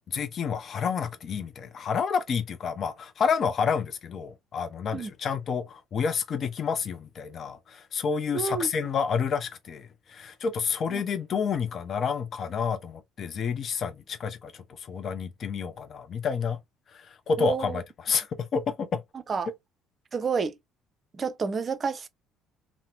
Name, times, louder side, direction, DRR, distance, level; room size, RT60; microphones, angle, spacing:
voice 1, 0.1-14.5 14.8-16.6 16.9-19.0, left 6 dB, 45° left, 0.4 m, -29 dB
voice 2, 8.3-8.7 10.9-11.0 17.4-17.8 19.3-19.5 20.1-20.6 21.1-22.1, right 5 dB, 35° right, 0.5 m, -29 dB
2.8 x 2.1 x 2.8 m
figure-of-eight pair, 55°, 0 cm